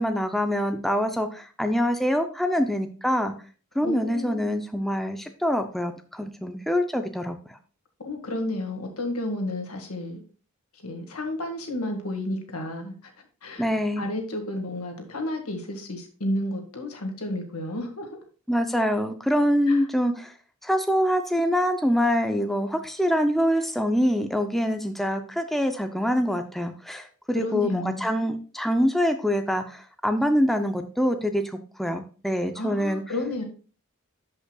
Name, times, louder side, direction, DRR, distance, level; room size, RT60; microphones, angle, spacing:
voice 1, 0.0-3.3 3.7-7.6 13.6-14.1 18.5-20.3 20.6-33.0, equal, ahead, 6 dB, 0.5 m, -25 dB
voice 2, 3.8-4.5 8.0-10.2 10.8-13.1 13.4-13.6 14.0-18.1 19.7-19.8 27.3-28.1 32.6-33.4, left 1 dB, 85° left, 4 dB, 1.8 m, -31 dB
12.5 x 5.4 x 2.3 m, 0.37 s
head